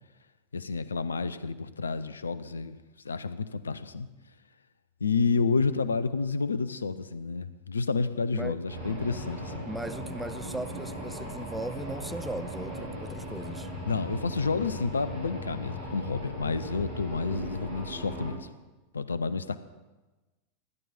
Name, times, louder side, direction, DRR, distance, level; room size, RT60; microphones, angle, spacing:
voice 1, 0.5-2.8 3.0-4.1 5.0-9.7 13.8-18.5 18.9-19.6, left 4 dB, 75° left, 14 dB, 0.7 m, -30 dB
sound 1, 8.7-18.3, equal, 55° right, 4.5 m, -38 dB
voice 2, 9.6-13.7, right 1 dB, 5° right, 11 dB, 0.6 m, -38 dB
16.5 x 11.0 x 4.3 m, 1.2 s
figure-of-eight pair, 90°, 0 cm